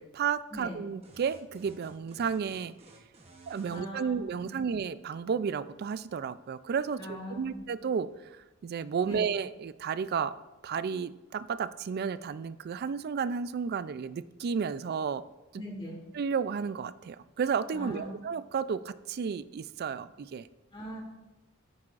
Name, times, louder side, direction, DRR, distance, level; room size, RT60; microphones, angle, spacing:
voice 1, 0.0-2.7 3.5-10.3 10.6-15.2 15.5-15.6 16.1-20.5, right 6 dB, 50° right, 15 dB, 0.3 m, -32 dB
sound 1, 1.0-3.8, right 2 dB, 30° right, 0.9 m, -54 dB
voice 2, 3.7-4.5 7.0-7.6 9.0-9.2 15.6-16.0 17.7-18.1 20.7-21.0, equal, 25° left, -1 dB, 2.1 m, -40 dB
9.7 x 9.5 x 2.5 m, 1.1 s
head